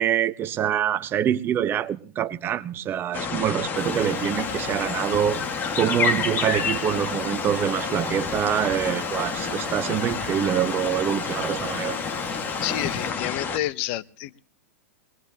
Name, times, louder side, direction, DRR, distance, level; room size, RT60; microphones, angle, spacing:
voice 1, 0.0-5.4 5.8-12.0, right 10 dB, 25° right, 0.9 m, -25 dB
sound 1, 3.1-13.6, left 5 dB, 25° left, 1.7 m, -29 dB
sound 2, 3.7-13.1, right 9 dB, 85° right, 1.3 m, -44 dB
voice 2, 12.6-14.4, left 15 dB, 50° left, 0.7 m, -29 dB
23.5 x 20.5 x 2.8 m
hypercardioid pair, 125°, 8 cm